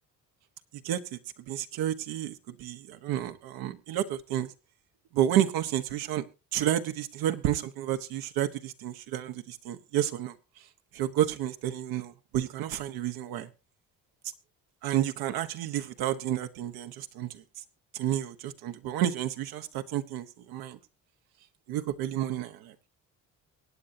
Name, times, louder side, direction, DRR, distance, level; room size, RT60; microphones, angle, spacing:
voice 1, 0.8-1.2 1.5-4.5 5.1-6.2 6.5-10.3 10.9-13.5 14.8-17.4 17.9-20.8 21.7-22.7, right 11 dB, 85° right, 1.1 m, -30 dB
23.5 x 8.8 x 2.7 m
supercardioid pair, 80°, 35 cm